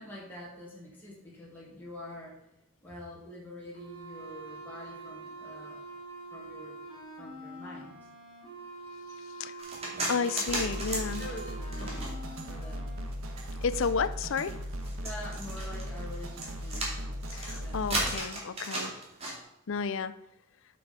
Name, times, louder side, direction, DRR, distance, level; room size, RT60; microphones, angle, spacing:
voice 1, 0.0-2.4 2.8-5.9 6.3-6.8 7.2-7.9 9.9-10.7 11.2-11.5 11.9-12.2 12.5-12.9 15.0-16.9 17.5-17.9, left 1 dB, 10° left, -6 dB, 2.2 m, -46 dB
sound 1, 3.7-13.0, right 3 dB, 25° left, 3.7 m, -45 dB
sound 2, 9.6-12.4 13.0-19.3, right 1 dB, 30° right, 2.5 m, -35 dB
voice 2, 10.1-11.2 13.6-14.5 17.3-18.9 19.7-20.2, left 5 dB, 60° left, 14 dB, 0.5 m, -31 dB
sound 3, 10.5-18.1, equal, 75° right, 1.2 m, -38 dB
8.0 x 6.1 x 5.1 m, 0.85 s
head